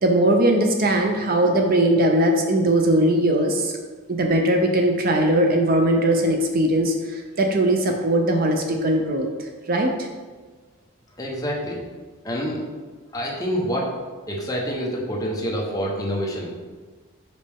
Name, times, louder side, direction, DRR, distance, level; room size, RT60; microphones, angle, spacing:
voice 1, 0.0-3.7 4.1-10.1, right 1 dB, 40° right, 3 dB, 0.5 m, -20 dB
voice 2, 11.2-11.8 12.2-12.6 13.1-13.9 14.3-16.6, equal, 15° left, -3 dB, 0.9 m, -27 dB
5.5 x 5.2 x 3.5 m, 1.4 s
head